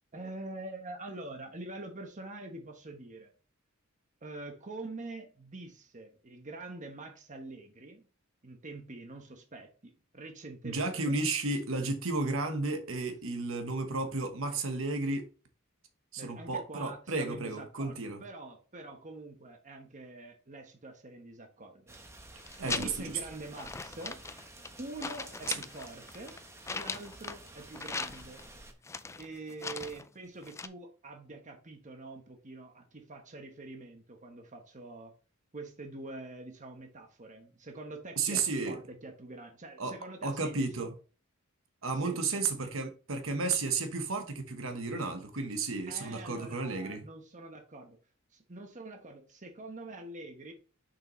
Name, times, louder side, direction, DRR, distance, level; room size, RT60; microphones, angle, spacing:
voice 1, 0.1-3.3 4.2-8.1 8.4-11.2 16.2-22.2 22.6-24.2 24.8-26.4 26.7-28.4 29.2-35.1 35.5-40.9 41.9-42.5 45.9-48.0 48.3-50.5, right 2 dB, 35° right, 1.1 m, -45 dB
voice 2, 10.6-15.3 16.1-18.2 22.6-23.2 25.5-25.6 38.2-38.8 39.8-39.9 40.2-40.9 41.8-47.0, right 3 dB, 70° right, 1.2 m, -33 dB
sound 1, 21.9-28.7, right 1 dB, 15° right, 1.0 m, -51 dB
sound 2, 22.4-23.2 23.5-24.8 25.0-27.5 27.7-28.5 28.8-30.1 30.4-30.7, left 4 dB, 15° left, 0.3 m, -39 dB
6.7 x 5.8 x 3.1 m
head